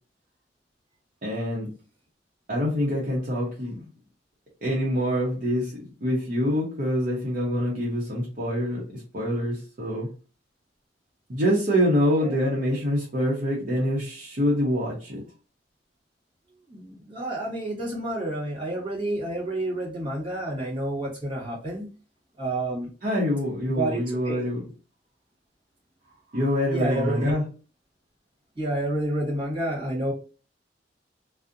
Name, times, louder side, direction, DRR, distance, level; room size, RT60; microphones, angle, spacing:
voice 1, 1.2-1.7 2.5-3.8 4.6-5.7 6.0-10.1 11.3-15.2 23.0-24.7 26.3-27.4, equal, 45° right, -5 dB, 0.7 m, -25 dB
voice 2, 16.7-21.9 22.4-22.9 23.7-24.4 26.7-27.4 28.6-30.1, right 1 dB, 30° right, -3 dB, 1.1 m, -29 dB
2.6 x 2.0 x 2.4 m, 0.34 s
head